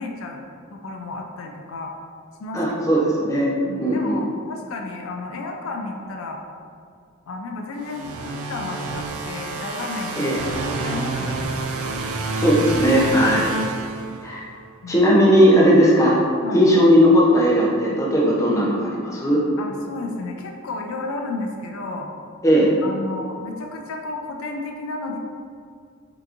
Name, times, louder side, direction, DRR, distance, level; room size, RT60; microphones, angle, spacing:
voice 1, 0.0-2.0 2.4-2.6 2.9-3.1 3.6-6.4 7.3-10.4 10.7-11.6 13.4-13.5 14.8-15.1 16.4-16.7 17.8-18.0 18.8-19.0 19.6-22.1 22.8-25.2, left 3 dB, 70° left, 2 dB, 0.4 m, -32 dB
voice 2, 2.5-3.5 3.8-4.2 10.2-10.4 12.3-13.5 14.2-14.4 14.9-16.2 16.5-19.4 22.4-22.7, equal, 15° left, -5 dB, 0.6 m, -17 dB
sound 1, 7.8-14.5, right 3 dB, 85° right, 0.4 m, -28 dB
5.7 x 2.9 x 2.5 m, 2.2 s
head